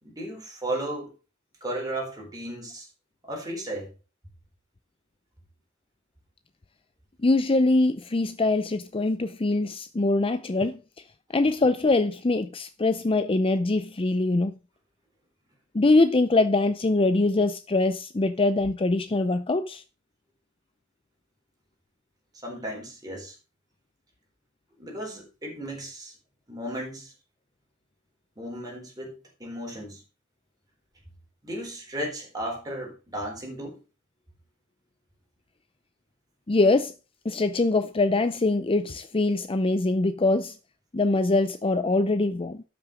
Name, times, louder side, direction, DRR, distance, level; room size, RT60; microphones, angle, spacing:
voice 1, 0.0-1.1 1.6-2.9 3.2-3.9 22.4-23.4 24.8-26.1 26.5-27.1 28.4-29.1 29.4-30.0 31.4-33.8, right 1 dB, 20° right, 4.2 m, -35 dB
voice 2, 7.2-10.8 11.3-14.5 15.7-19.8 36.5-36.9 37.2-40.5 40.9-42.6, left 2 dB, 25° left, 0.5 m, -23 dB
12.5 x 6.0 x 5.1 m
head